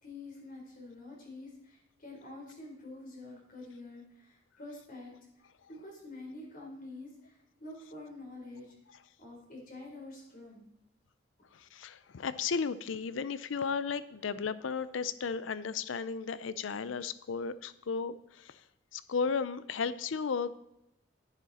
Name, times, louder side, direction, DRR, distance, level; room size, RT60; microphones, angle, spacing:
voice 1, 0.0-5.1 5.7-8.7 9.2-10.6, left 2 dB, 50° left, -1 dB, 4.1 m, -47 dB
voice 2, 11.5-18.6 18.9-20.6, left 5 dB, 90° left, 15 dB, 0.5 m, -34 dB
11.0 x 10.0 x 4.2 m, 0.85 s
head